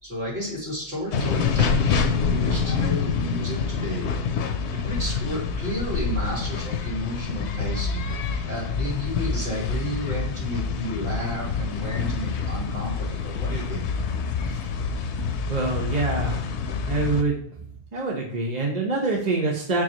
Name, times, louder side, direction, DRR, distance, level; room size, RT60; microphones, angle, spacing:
voice 1, 0.0-4.1 4.7-13.8, equal, 75° right, -6 dB, 2.9 m, -32 dB
sound 1, 1.1-17.2, left 5 dB, 85° left, 0.9 m, -27 dB
voice 2, 15.5-16.5 16.8-17.4 17.9-19.8, right 3 dB, 40° right, -2 dB, 1.2 m, -25 dB
6.8 x 4.8 x 3.0 m, 0.62 s
omnidirectional pair, 1.1 m